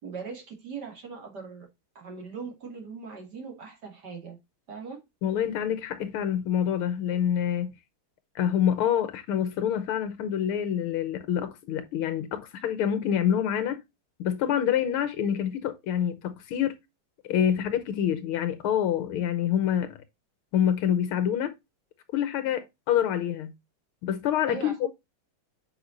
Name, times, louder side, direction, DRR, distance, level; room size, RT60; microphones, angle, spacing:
voice 1, 0.0-1.7 1.9-4.4 4.7-5.0 24.5-24.9, right 5 dB, 50° right, 2.9 m, -40 dB
voice 2, 5.2-7.7 8.3-13.8 14.2-16.7 17.3-20.0 20.5-21.6 22.1-23.5 24.0-24.9, left 9 dB, 80° left, 1.7 m, -26 dB
8.1 x 5.7 x 2.5 m
omnidirectional pair, 2.4 m